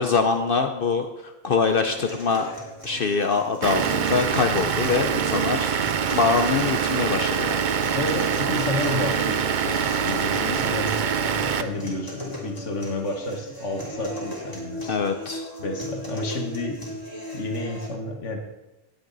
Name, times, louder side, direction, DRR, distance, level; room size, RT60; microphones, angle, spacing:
voice 1, 0.0-2.5 2.8-5.7 6.1-7.6 10.1-10.6 14.9-15.5, left 5 dB, 55° left, 7 dB, 0.8 m, -24 dB
sound 1, 1.9-17.9, left 1 dB, 15° left, 2.9 m, -38 dB
Vehicle / Engine, 3.6-11.6, right 7 dB, 50° right, 0.7 m, -24 dB
voice 2, 7.9-15.0 15.6-16.8 17.3-18.4, left 2 dB, 80° left, 3 dB, 1.8 m, -31 dB
17.5 x 8.0 x 4.0 m, 1.0 s
omnidirectional pair, 1.2 m